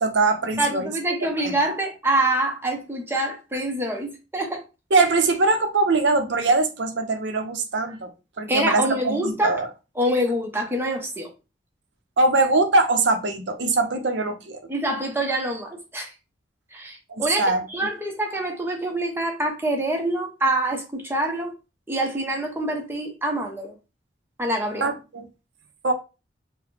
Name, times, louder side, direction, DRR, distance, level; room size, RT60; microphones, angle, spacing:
voice 1, 0.0-0.9 1.4-1.6 4.9-8.1 8.4-9.7 12.2-14.6 17.1-17.6 24.8-25.3 25.8-25.9, right 3 dB, 75° right, 0.7 m, -22 dB
voice 2, 0.6-4.6 8.5-9.6 10.0-11.3 14.7-16.1 16.7-21.5 21.9-23.7 24.4-24.9, right 1 dB, 10° right, 0.7 m, -25 dB
4.8 x 2.2 x 3.2 m
head